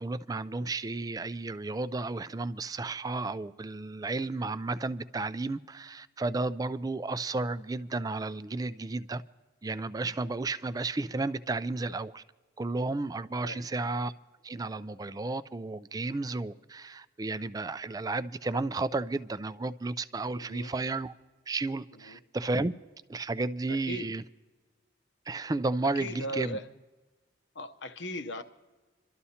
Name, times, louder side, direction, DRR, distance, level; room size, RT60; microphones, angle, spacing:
voice 1, 0.0-9.2 9.6-12.2 12.6-14.1 14.4-21.1 21.5-22.7 23.1-24.2 25.3-26.6, right 3 dB, 20° right, 0.3 m, -33 dB
voice 2, 13.4-13.9 20.4-20.7 21.9-22.2 23.7-24.1 25.9-26.7 27.5-28.4, left 1 dB, 70° left, 0.9 m, -39 dB
27.5 x 12.5 x 2.8 m
head